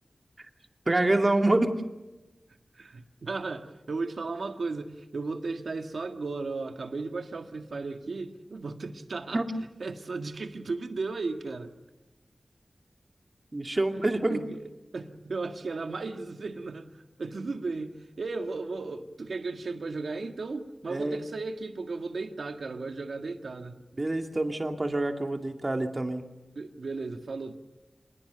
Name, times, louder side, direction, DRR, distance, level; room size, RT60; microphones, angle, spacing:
voice 1, 0.9-1.7 9.3-9.4 13.5-14.4 20.9-21.2 24.0-26.2, right 2 dB, 40° right, 2.3 m, -26 dB
voice 2, 2.8-9.4 9.8-11.7 14.3-16.9 17.2-23.8 26.5-27.6, right 3 dB, 85° right, 1.8 m, -35 dB
26.5 x 20.5 x 6.9 m
wide cardioid pair, 55°, 0 cm